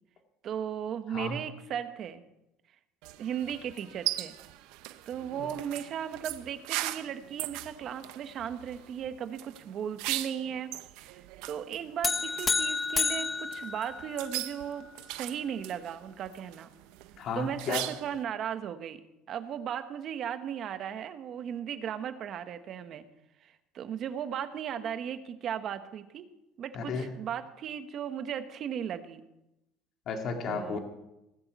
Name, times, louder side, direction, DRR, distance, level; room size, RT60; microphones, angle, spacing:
voice 1, 0.4-2.2 3.2-4.4 5.1-10.7 11.0-14.9 15.2-16.7 17.3-19.0 19.3-23.0 23.4-26.3 26.6-29.2 30.5-30.8, right 8 dB, 40° right, 10 dB, 1.1 m, -36 dB
sound 1, 3.0-18.2, right 16 dB, 75° right, 0.7 m, -40 dB
sound 2, 12.0-14.5, left 4 dB, 20° left, 0.9 m, -30 dB
voice 2, 17.2-17.8 26.7-27.1 30.1-30.8, left 5 dB, 45° left, 4 dB, 2.0 m, -33 dB
18.0 x 7.1 x 8.2 m, 0.91 s
cardioid pair, 145°, 0 cm